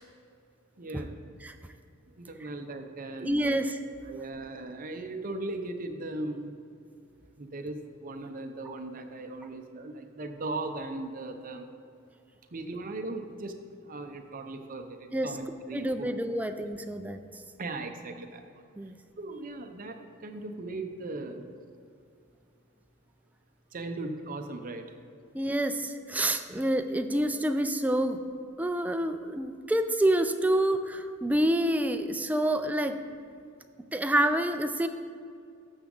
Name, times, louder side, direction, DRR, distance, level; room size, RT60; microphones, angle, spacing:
voice 1, 0.8-1.2 2.1-3.7 4.0-6.6 7.4-11.7 12.5-13.5 13.8-16.1 17.6-18.6 19.2-21.5 23.7-24.9, right 2 dB, 40° right, 5 dB, 0.7 m, -38 dB
voice 2, 3.2-3.8 15.1-15.3 15.7-17.2 18.8-19.0 25.3-28.2 28.6-33.0 33.9-34.9, right 1 dB, 5° right, 8 dB, 0.4 m, -27 dB
12.0 x 7.1 x 3.8 m, 2.4 s
head